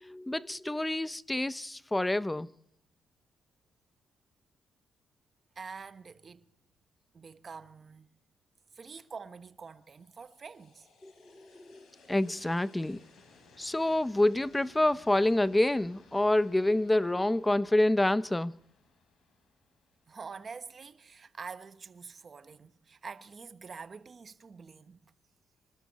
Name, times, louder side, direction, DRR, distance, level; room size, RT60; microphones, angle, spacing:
voice 1, 0.0-2.5 11.0-11.8 12.1-13.0 13.6-18.5, left 1 dB, 10° left, 0.6 m, -27 dB
voice 2, 5.5-6.4 7.1-8.1 8.7-10.9 20.1-25.1, right 5 dB, 40° right, 1.1 m, -46 dB
sound 1, 9.7-20.7, left 3 dB, 70° left, 6.4 m, -61 dB
25.5 x 12.5 x 4.2 m
cardioid pair, 85°, 0 cm